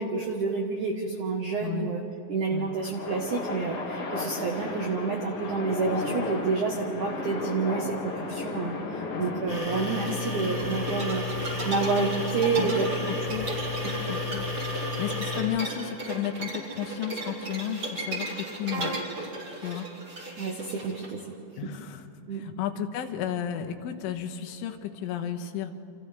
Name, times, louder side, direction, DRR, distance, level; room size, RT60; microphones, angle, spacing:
voice 1, 0.0-2.0 2.3-8.8 9.2-12.9 13.8-13.9 18.8-18.9 19.7-19.8 20.4-21.2 22.3-22.4, right 4 dB, 80° right, 1 dB, 1.7 m, -29 dB
voice 2, 1.6-1.9 2.5-2.7 9.0-9.5 12.6-13.5 14.1-14.5 15.0-19.0 19.6-19.9 21.6-25.7, left 10 dB, 80° left, 5 dB, 3.5 m, -33 dB
sound 1, 2.5-15.9, left 3 dB, 50° left, 1.7 m, -36 dB
sound 2, 9.5-15.4, left 3 dB, 10° right, 2.9 m, -32 dB
sound 3, 10.6-21.1, right 2 dB, 25° right, 4.6 m, -36 dB
29.0 x 27.5 x 3.4 m, 2.7 s
omnidirectional pair, 5.7 m